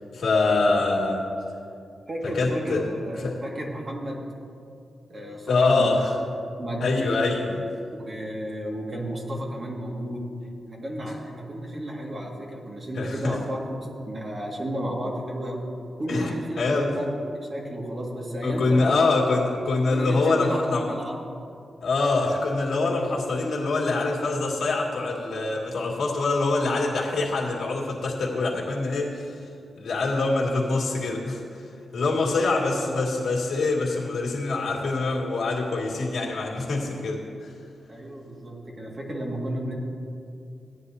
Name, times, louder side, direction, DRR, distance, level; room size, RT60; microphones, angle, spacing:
voice 1, 0.1-1.3 2.3-2.8 3.2-3.4 5.5-6.1 6.8-7.6 12.9-13.4 16.1-16.9 18.4-20.9 21.8-29.3 29.8-31.6 31.9-37.5, left 3 dB, 80° left, -3 dB, 2.2 m, -24 dB
voice 2, 2.1-4.3 5.1-6.0 6.6-6.9 8.1-10.3 10.7-15.7 16.0-17.1 17.5-19.2 19.9-21.2 22.9-23.0 32.3-32.9 37.9-39.7, equal, 40° right, -2 dB, 2.0 m, -33 dB
16.5 x 10.0 x 2.8 m, 2.5 s
wide cardioid pair, 110°, 0 cm